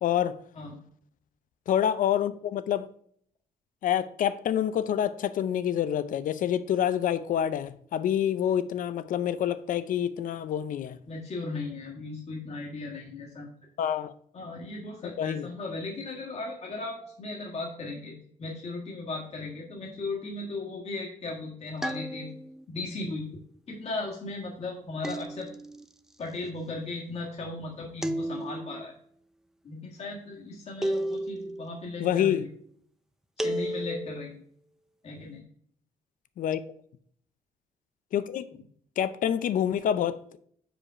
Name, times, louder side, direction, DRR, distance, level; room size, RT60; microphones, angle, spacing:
voice 1, 0.0-0.4 1.7-2.9 3.8-11.0 13.8-14.1 15.2-15.5 32.0-32.4 36.4-36.6 38.1-38.4 39.0-40.4, left 10 dB, 70° left, 0.5 m, -27 dB
voice 2, 11.1-13.6 14.3-18.1 18.4-22.3 22.7-23.3 23.7-25.5 26.2-28.9 29.6-32.5 33.4-34.4 35.0-35.4 38.5-38.6, left 3 dB, 45° left, 1.6 m, -37 dB
sound 1, 21.8-22.6 25.0-25.8 28.0-28.8 30.8-31.6 33.4-34.2, right 1 dB, 5° right, 0.4 m, -32 dB
5.1 x 4.9 x 5.6 m
cardioid pair, 115°, 15 cm